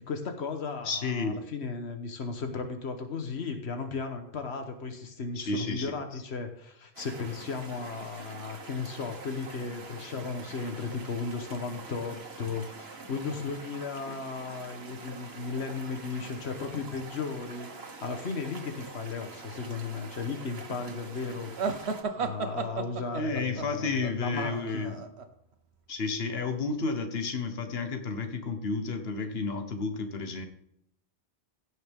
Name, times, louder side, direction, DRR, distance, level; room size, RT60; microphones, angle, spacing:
voice 1, 0.0-21.8 22.2-25.0, left 4 dB, 85° left, 6 dB, 1.4 m, -35 dB
voice 2, 0.8-1.4 5.3-5.9 23.1-25.1 25.9-30.5, left 4 dB, 70° left, 6 dB, 1.5 m, -31 dB
sound 1, 7.0-22.0, right 3 dB, 70° right, 1.6 m, -45 dB
sound 2, 21.6-25.3, right 5 dB, 90° right, 1.3 m, -34 dB
16.5 x 6.3 x 3.6 m, 0.76 s
omnidirectional pair, 1.1 m